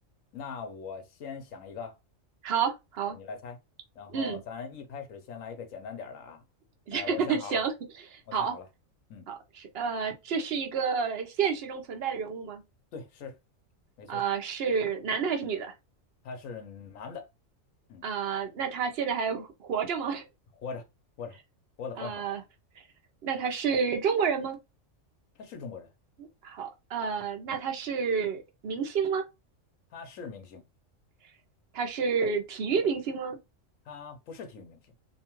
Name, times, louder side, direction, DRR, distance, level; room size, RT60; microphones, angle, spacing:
voice 1, 0.3-2.0 3.1-3.6 3.9-6.4 6.9-7.6 8.3-8.7 9.1-9.3 12.9-13.4 14.0-14.2 16.2-17.2 17.9-18.0 20.6-20.8 21.2-21.4 21.8-22.3 25.4-25.9 29.9-30.6 33.9-34.8, left 5 dB, 85° left, 1.2 m, -41 dB
voice 2, 2.4-3.2 4.1-4.4 6.9-7.7 8.1-8.5 9.3-9.4 9.7-12.6 14.1-15.7 18.0-20.2 22.0-22.4 23.2-24.6 26.2-29.2 31.7-33.4, right 6 dB, 55° right, 0.9 m, -30 dB
2.9 x 2.3 x 3.0 m
omnidirectional pair, 1.3 m